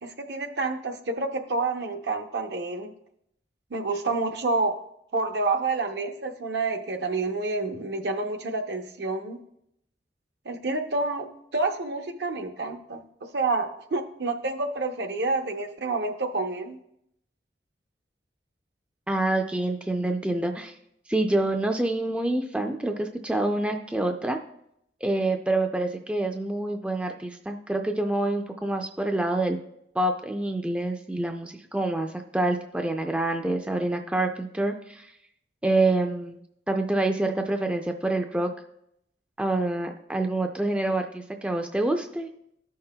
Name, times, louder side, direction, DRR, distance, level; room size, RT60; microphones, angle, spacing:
voice 1, 0.0-2.9 3.7-4.8 5.1-9.4 10.4-16.8, right 3 dB, 65° right, 6 dB, 0.7 m, -28 dB
voice 2, 19.1-20.7 21.1-24.4 25.0-29.6 29.9-35.1 35.6-36.4 36.7-38.5 39.4-42.3, right 2 dB, 5° right, 4 dB, 0.4 m, -27 dB
13.5 x 5.6 x 2.2 m, 0.76 s
head